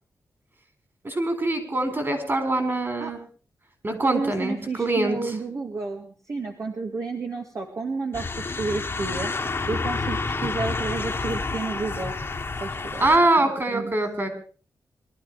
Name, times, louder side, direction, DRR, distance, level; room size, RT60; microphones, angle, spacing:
voice 1, 1.0-3.2 3.8-5.2 13.0-14.3, right 2 dB, 35° right, 8 dB, 4.3 m, -23 dB
voice 2, 4.0-8.3 8.6-9.3 9.7-12.1 12.6-13.1 13.4-13.9, right 3 dB, 50° right, 2 dB, 2.0 m, -31 dB
Street sounds, 8.1-13.2, left 3 dB, 35° left, 1.6 m, -29 dB
21.5 x 12.5 x 4.8 m, 0.39 s
wide cardioid pair, 100°, 7 cm